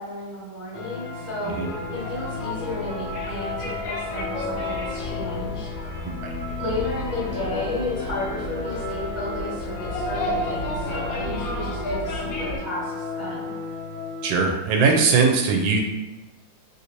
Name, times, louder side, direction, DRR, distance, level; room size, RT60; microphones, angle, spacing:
voice 1, 0.0-1.5 1.9-5.7 6.6-13.5, left 2 dB, 10° right, -9 dB, 0.7 m, -32 dB
sound 1, 0.7-14.6, left 4 dB, 60° left, 0.9 m, -34 dB
sound 2, 1.2-12.6, equal, 85° left, 1.3 m, -33 dB
voice 2, 14.2-15.8, right 4 dB, 80° right, 1 dB, 1.3 m, -20 dB
3.3 x 2.6 x 2.9 m, 1.0 s
omnidirectional pair, 2.1 m